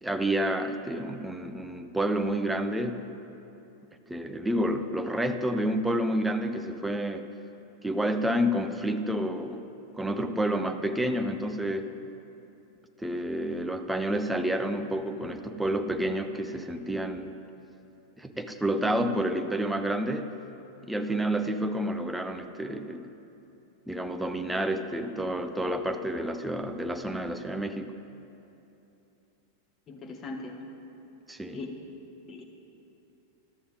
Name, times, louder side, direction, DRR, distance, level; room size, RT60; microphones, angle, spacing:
voice 1, 0.0-3.0 4.1-7.3 7.8-9.7 9.9-11.9 13.0-17.4 18.2-20.3 20.8-23.1 23.9-27.9 31.3-31.6, right 1 dB, 5° right, 7 dB, 0.4 m, -29 dB
voice 2, 29.9-30.5 31.5-31.7 32.3-32.4, left 3 dB, 25° left, 1 dB, 1.0 m, -39 dB
12.5 x 6.9 x 3.8 m, 2.9 s
figure-of-eight pair, 90°, 0 cm